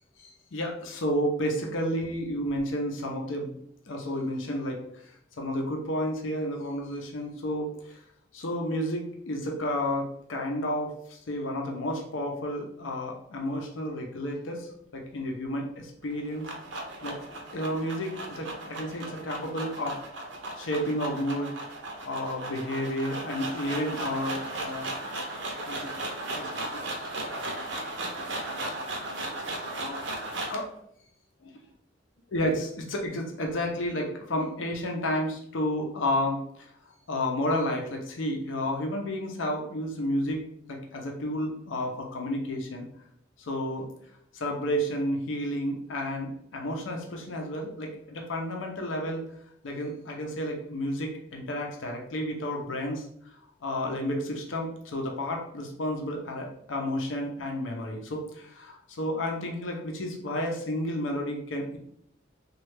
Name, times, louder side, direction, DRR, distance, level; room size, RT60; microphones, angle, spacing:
voice 1, 0.2-3.6 3.9-4.8 5.4-8.0 8.3-16.5 17.0-17.2 17.5-20.0 20.6-21.5 22.1-25.9 26.2-27.9 28.3-28.5 29.7-30.0 30.5-30.7 32.3-36.4 37.1-42.8 43.4-43.9 44.3-49.2 49.6-53.1 53.6-61.8, equal, 90° left, 1 dB, 0.6 m, -31 dB
sound 1, 16.0-30.6, right 2 dB, 65° right, 0.6 m, -36 dB
3.1 x 2.3 x 3.2 m, 0.69 s
head